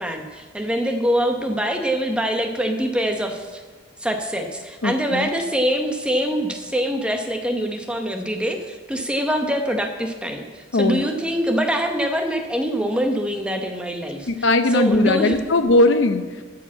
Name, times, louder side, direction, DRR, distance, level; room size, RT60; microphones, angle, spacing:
voice 1, 0.0-3.6 4.0-14.3 14.7-15.5, equal, 5° right, 4 dB, 0.9 m, -24 dB
voice 2, 4.8-5.3 10.7-11.1 14.3-16.4, left 2 dB, 65° left, 9 dB, 0.7 m, -19 dB
12.5 x 4.9 x 8.3 m, 1.4 s
head